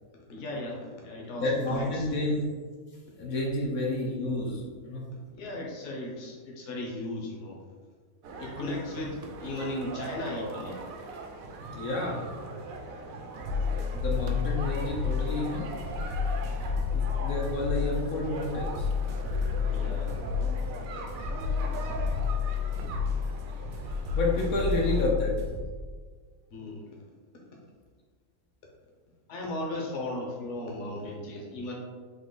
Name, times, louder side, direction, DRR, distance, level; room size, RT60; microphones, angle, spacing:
voice 1, 0.1-2.1 5.3-7.6 8.4-10.8 13.7-13.8 19.7-20.2 20.6-20.9 21.2-21.4 26.5-26.9 29.3-31.7, left 1 dB, 60° left, -2 dB, 1.1 m, -37 dB
voice 2, 1.4-2.5 3.2-5.0 11.7-12.2 13.9-16.0 16.9-18.9 24.2-25.3, left 1 dB, 80° left, -3 dB, 1.2 m, -30 dB
sound 1, 8.2-25.1, right 3 dB, 80° right, 1.0 m, -40 dB
sound 2, 13.4-25.6, left 6 dB, 55° right, 0.9 m, -30 dB
3.9 x 3.0 x 3.7 m, 1.5 s
omnidirectional pair, 1.5 m